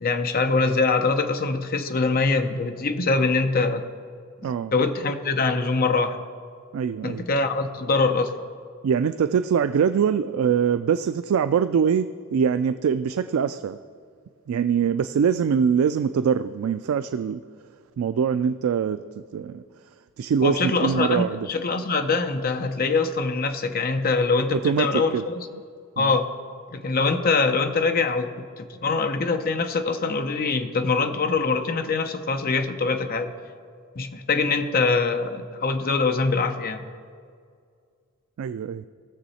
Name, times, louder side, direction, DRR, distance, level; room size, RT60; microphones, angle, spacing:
voice 1, 0.0-3.8 4.7-6.2 7.0-8.3 20.4-25.5 26.0-26.3 26.7-33.3 34.0-36.8, left 4 dB, 45° left, 7 dB, 0.7 m, -23 dB
voice 2, 4.4-4.7 6.7-7.3 8.8-13.8 14.5-17.4 18.0-19.6 20.2-21.5 24.5-25.2 26.0-26.1 38.4-38.9, right 7 dB, 75° right, 12 dB, 0.3 m, -23 dB
18.0 x 7.0 x 4.2 m, 2.1 s
head